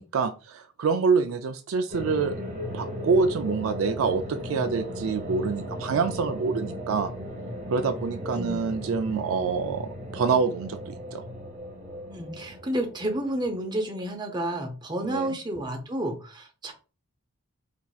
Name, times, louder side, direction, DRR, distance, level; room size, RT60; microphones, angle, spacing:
voice 1, 0.0-2.4 2.7-7.1 7.7-11.2 15.0-15.4, right 5 dB, 70° right, 8 dB, 0.4 m, -26 dB
sound 1, 1.9-14.0, equal, 35° right, 1.0 m, -37 dB
voice 2, 8.3-8.6 12.1-16.7, right 1 dB, 20° right, 3 dB, 0.6 m, -31 dB
4.4 x 2.6 x 2.3 m, 0.34 s
head